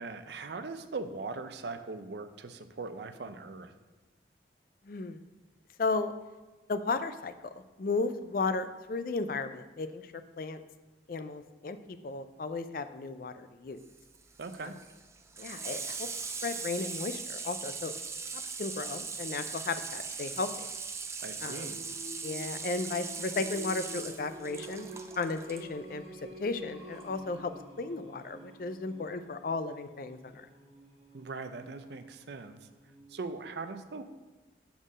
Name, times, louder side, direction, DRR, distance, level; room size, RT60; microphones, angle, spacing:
voice 1, 0.0-3.7 14.4-14.7 21.2-21.8 31.1-32.6 33.1-34.0, right 3 dB, 70° right, 9 dB, 0.5 m, -40 dB
voice 2, 4.8-5.2 5.8-6.1 6.7-10.6 11.1-11.8 12.0-13.8 14.6-14.7 15.4-16.1 16.4-17.9 18.6-20.7 21.4-21.7 22.2-24.9 25.2-27.5 27.8-30.5, left 3 dB, 50° left, 10 dB, 0.4 m, -34 dB
Water tap faucet / Sink (filling or washing), 13.8-25.6 27.0-27.1, right 5 dB, 15° right, 0.3 m, -40 dB
Singing, 21.5-33.3, equal, 35° right, 1.3 m, -49 dB
7.0 x 4.3 x 6.1 m, 1.2 s
head